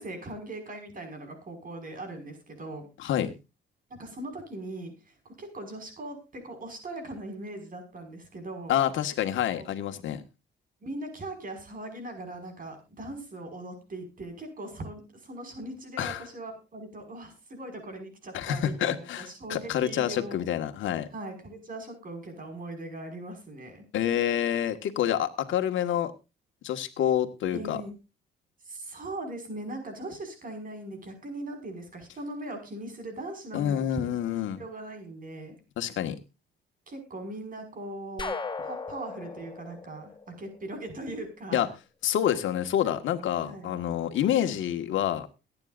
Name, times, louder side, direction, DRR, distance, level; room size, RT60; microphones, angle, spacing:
voice 1, 0.0-2.9 3.9-8.8 9.5-9.7 10.8-20.4 21.1-23.8 27.5-27.9 28.6-35.6 36.9-38.4 38.6-41.7 43.4-43.8, right 2 dB, 45° right, 5 dB, 5.5 m, -40 dB
voice 2, 3.0-3.3 8.7-10.2 16.0-16.2 18.3-21.1 23.9-26.1 26.6-27.8 33.5-34.6 35.8-36.2 41.5-41.7 42.0-45.3, left 10 dB, 80° left, 8 dB, 1.7 m, -27 dB
sound 1, 38.2-41.0, left 4 dB, 20° left, 1.4 m, -37 dB
22.0 x 9.7 x 2.6 m, 0.27 s
cardioid pair, 90°, 20 cm